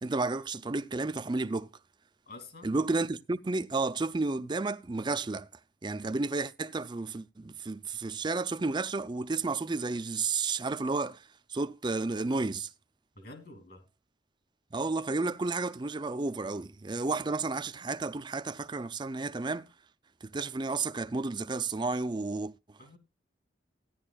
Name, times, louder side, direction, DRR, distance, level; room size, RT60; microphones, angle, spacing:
voice 1, 0.0-1.7 2.6-5.5 5.8-12.7 14.7-19.7 20.2-22.5, right 3 dB, 25° right, 0.5 m, -32 dB
voice 2, 2.3-2.8 13.2-13.9 22.8-23.0, left 2 dB, 55° left, 2.5 m, -48 dB
15.0 x 10.5 x 2.3 m
head